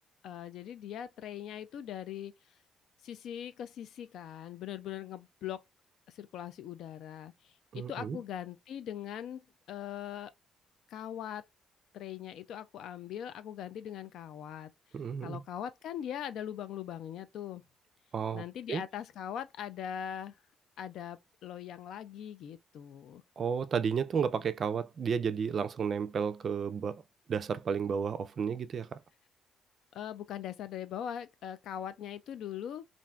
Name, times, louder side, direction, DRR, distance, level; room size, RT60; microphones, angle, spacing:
voice 1, 0.2-2.3 3.0-5.6 6.1-10.3 10.9-11.4 11.9-14.7 15.2-17.6 18.3-20.3 20.8-23.2 29.9-32.8, left 10 dB, 75° left, 0.4 m, -41 dB
voice 2, 7.7-8.2 14.9-15.4 18.1-18.4 18.7-18.8 23.4-27.0 27.3-29.0, right 6 dB, 50° right, 0.3 m, -32 dB
2.5 x 2.3 x 3.0 m
cardioid pair, 90°, 0 cm